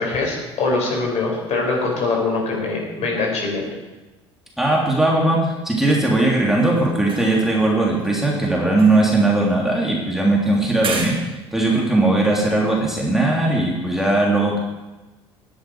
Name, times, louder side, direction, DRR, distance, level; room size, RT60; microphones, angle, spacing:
voice 1, 0.0-3.7, left 3 dB, 50° left, -1 dB, 5.9 m, -23 dB
voice 2, 4.6-11.2 11.5-14.6, right 2 dB, ahead, -3 dB, 3.3 m, -19 dB
sound 1, 6.6-7.7 8.0-10.1 10.8-11.1, right 4 dB, 35° right, 3.9 m, -34 dB
18.5 x 10.5 x 4.7 m, 1.1 s
hypercardioid pair, 65°, 15 cm